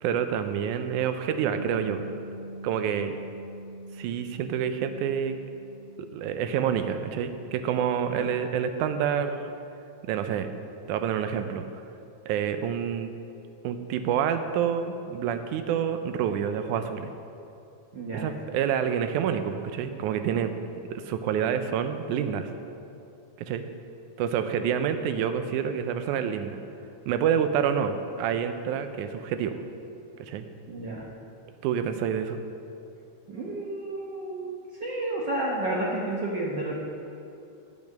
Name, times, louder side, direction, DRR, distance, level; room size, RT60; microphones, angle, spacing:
voice 1, 0.0-2.0 2.6-3.1 4.0-5.4 6.1-9.5 10.1-10.5 10.9-11.7 12.3-13.1 13.6-17.1 18.1-20.5 20.9-22.5 23.5-23.7 24.2-26.6 27.1-29.5 30.2-30.5 31.6-32.4, right 8 dB, 90° right, 9 dB, 2.1 m, -28 dB
Bass guitar, 1.5-7.7, right 2 dB, 40° right, 1.7 m, -43 dB
voice 2, 17.9-18.3 30.7-31.1 33.3-36.8, right 1 dB, 70° right, -4 dB, 1.0 m, -31 dB
10.5 x 6.0 x 6.4 m, 2.7 s
omnidirectional pair, 3.4 m